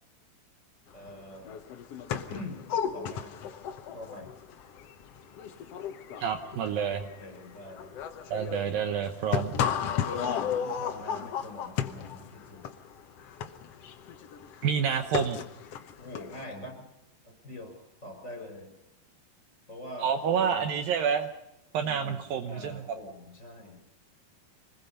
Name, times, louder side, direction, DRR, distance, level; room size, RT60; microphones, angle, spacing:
voice 1, 0.9-1.6 2.3-2.6 2.9-3.5 3.9-4.3 7.0-7.9 10.0-12.6 16.0-16.9 17.2-18.7 19.7-20.7 21.8-23.9, left 1 dB, 20° left, 4 dB, 5.8 m, -44 dB
sound 1, 1.1-1.2 1.4-16.4, left 8 dB, 80° left, 1.3 m, -34 dB
voice 2, 6.2-7.0 8.3-9.5 14.6-15.4 20.0-21.3 21.7-22.8, right 7 dB, 70° right, 7 dB, 2.6 m, -28 dB
26.0 x 20.5 x 5.5 m, 0.86 s
omnidirectional pair, 4.5 m